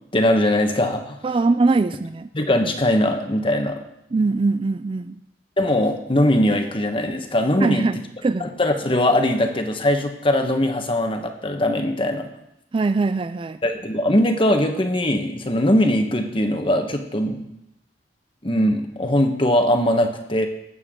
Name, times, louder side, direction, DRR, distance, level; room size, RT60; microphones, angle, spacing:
voice 1, 0.1-1.2 2.3-3.8 5.6-7.8 8.4-12.3 13.6-17.5 18.4-20.5, left 1 dB, 30° left, 5 dB, 1.2 m, -21 dB
voice 2, 1.2-2.3 4.1-5.2 7.6-8.0 8.2-8.5 12.7-13.6, right 3 dB, 30° right, 12 dB, 0.3 m, -21 dB
19.5 x 8.2 x 3.8 m, 0.84 s
head